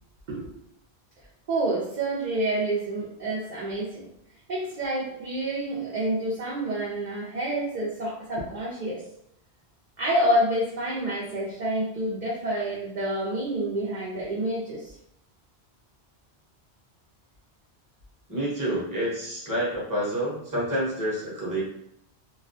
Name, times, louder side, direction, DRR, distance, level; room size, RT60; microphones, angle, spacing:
voice 1, 0.3-0.6 1.5-4.1 4.5-9.0 10.0-14.9, right 1 dB, 55° right, -6 dB, 0.6 m, -28 dB
voice 2, 18.3-21.6, right 1 dB, 20° right, -5 dB, 0.8 m, -28 dB
2.3 x 2.1 x 2.6 m, 0.73 s
omnidirectional pair, 1.1 m